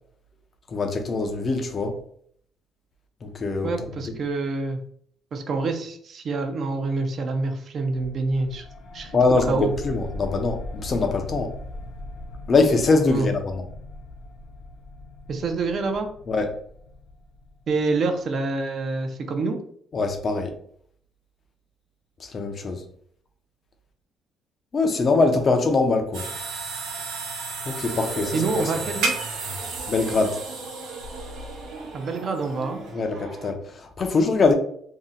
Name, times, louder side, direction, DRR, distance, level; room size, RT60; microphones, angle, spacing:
voice 1, 0.7-1.9 3.2-3.9 9.1-11.5 12.5-13.7 16.3-16.6 19.9-20.5 22.2-22.8 24.7-26.3 27.7-28.6 29.9-30.4 32.9-34.5, left 3 dB, 30° left, 5 dB, 0.4 m, -23 dB
voice 2, 3.6-4.8 5.3-8.6 8.9-9.2 9.5-9.7 13.1-13.3 15.3-16.1 17.7-19.6 28.3-29.1 31.9-32.8, right 3 dB, 45° right, 5 dB, 0.4 m, -26 dB
sound 1, 7.9-18.1, left 2 dB, 85° left, 0.6 m, -39 dB
sound 2, 26.1-32.9, right 4 dB, 90° right, 0.7 m, -33 dB
sound 3, 27.8-33.5, right 3 dB, 70° right, 1.0 m, -40 dB
2.7 x 2.1 x 3.7 m, 0.63 s
cardioid pair, 150°, 0 cm